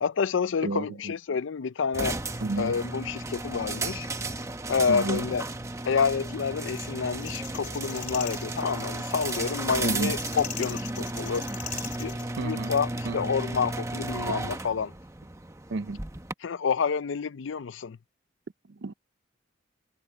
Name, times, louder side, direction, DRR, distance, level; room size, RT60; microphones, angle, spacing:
voice 1, 0.0-2.2 2.6-4.1 4.7-5.4 5.9-11.5 12.0-12.2 12.4-14.9 16.4-18.0, left 6 dB, 90° left, 0.5 m, -28 dB
voice 2, 0.6-1.1 2.4-2.7 4.9-5.3 9.8-10.2 12.4-12.8 13.0-13.3 15.7-16.0 18.7-18.9, right 3 dB, 70° right, 0.6 m, -31 dB
sound 1, 1.9-16.3, right 2 dB, 15° right, 0.9 m, -34 dB
sound 2, 7.2-12.2, left 9 dB, 40° left, 2.9 m, -40 dB
head